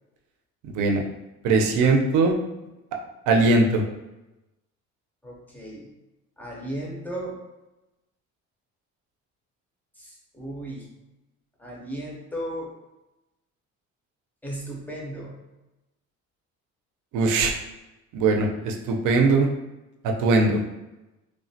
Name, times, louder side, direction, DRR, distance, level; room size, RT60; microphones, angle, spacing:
voice 1, 0.6-1.0 1.4-2.3 3.3-3.8 17.1-17.5 18.1-19.5 20.0-20.6, right 3 dB, 85° right, 2 dB, 0.5 m, -20 dB
voice 2, 5.2-5.9 6.4-7.4 10.0-10.9 11.6-12.7 14.4-15.4, right 1 dB, 5° left, -4 dB, 0.4 m, -35 dB
3.1 x 2.1 x 2.6 m, 1.0 s
cardioid pair, 175°, 30 cm